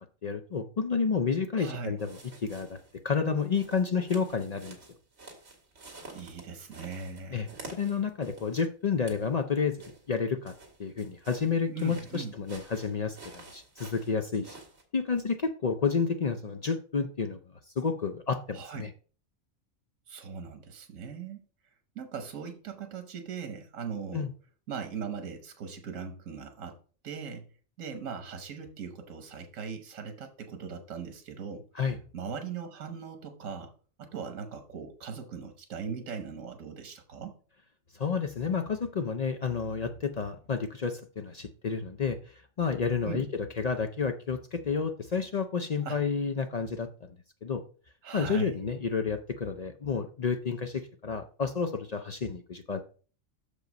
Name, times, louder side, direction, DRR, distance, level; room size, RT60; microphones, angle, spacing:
voice 1, 0.2-2.8 3.0-4.8 7.3-10.5 10.8-14.6 14.9-17.4 17.8-18.9 24.1-24.3 31.8-32.0 37.9-47.2 47.4-47.6 48.1-52.8, left 5 dB, 55° left, 7 dB, 0.4 m, -30 dB
voice 2, 1.6-1.9 6.1-7.7 11.7-12.3 18.5-18.9 20.1-21.4 21.9-24.3 24.7-27.5 27.8-31.6 32.1-33.7 34.0-37.3 43.0-43.3 45.8-46.0 48.0-48.6, right 6 dB, 85° right, 7 dB, 1.4 m, -39 dB
sound 1, 2.0-3.0 3.4-8.6 8.9-9.3 9.8-14.8, right 3 dB, 55° right, 2.0 m, -49 dB
6.5 x 5.3 x 5.2 m, 0.39 s
omnidirectional pair, 1.3 m